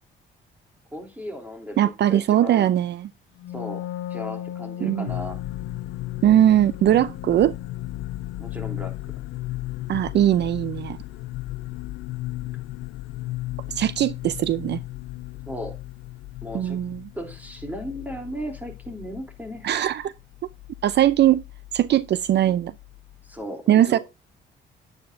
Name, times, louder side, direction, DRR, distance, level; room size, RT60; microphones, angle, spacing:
voice 1, 0.9-2.7 3.5-5.4 8.4-9.1 15.4-15.7 16.4-16.8 17.1-19.7 23.3-24.0, equal, 10° right, 3.2 m, -36 dB
voice 2, 1.8-3.1 4.8-5.1 6.2-7.6 9.9-11.0 13.7-14.8 16.5-17.0 19.6-20.1 20.8-21.4 21.7-22.7 23.7-24.0, right 12 dB, 60° right, 0.5 m, -20 dB
Wind instrument woodwind instrument, 3.4-9.1, left 11 dB, 70° left, 1.3 m, -37 dB
sound 1, 5.1-23.4, left 17 dB, 90° left, 0.4 m, -36 dB
10.0 x 9.2 x 2.6 m
cardioid pair, 90°, 20 cm